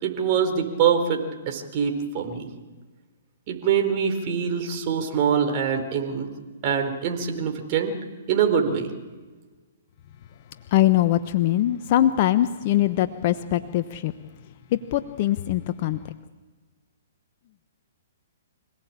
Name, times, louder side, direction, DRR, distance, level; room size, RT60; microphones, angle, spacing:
voice 1, 0.0-2.5 3.5-6.3 6.6-7.9 8.3-8.9, right 7 dB, 40° right, 4 dB, 4.5 m, -24 dB
voice 2, 10.7-14.1 14.7-16.1, left 13 dB, 45° left, 11 dB, 1.1 m, -22 dB
26.0 x 18.0 x 8.8 m, 1.3 s
figure-of-eight pair, 120°, 0 cm